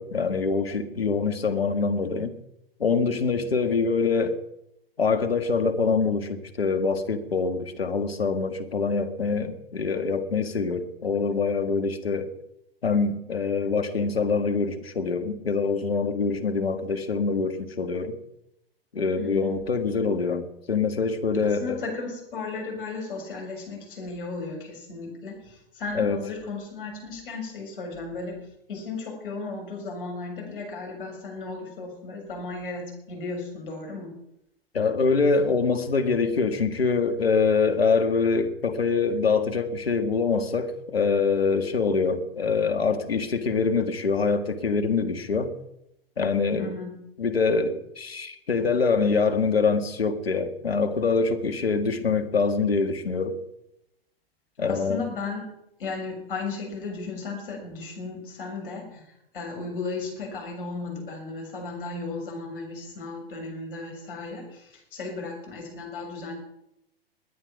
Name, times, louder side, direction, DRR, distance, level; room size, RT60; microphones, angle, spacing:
voice 1, 0.0-2.3 2.8-4.4 5.0-12.3 12.8-18.2 18.9-21.8 25.9-26.2 34.7-45.5 46.2-46.7 47.2-53.4 54.6-55.0, left 4 dB, 75° left, 1.8 m, -24 dB
voice 2, 19.2-19.5 21.4-28.4 28.7-34.1 46.6-46.9 54.6-55.4 55.8-66.4, left 3 dB, 60° left, 6.9 m, -35 dB
20.5 x 9.8 x 6.0 m
figure-of-eight pair, 100°, 30 cm